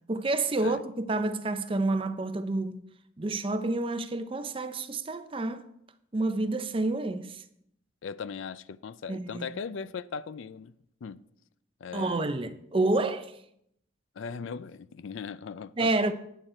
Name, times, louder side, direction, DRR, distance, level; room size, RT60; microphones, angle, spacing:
voice 1, 0.1-2.8 3.2-5.6 6.1-7.4 9.1-9.6 11.9-13.4 15.8-16.1, right 2 dB, 30° right, 0.5 m, -29 dB
voice 2, 8.0-10.7 11.0-11.2 11.8-12.3 14.2-15.9, left 6 dB, 85° left, 0.4 m, -38 dB
9.1 x 8.7 x 4.4 m
head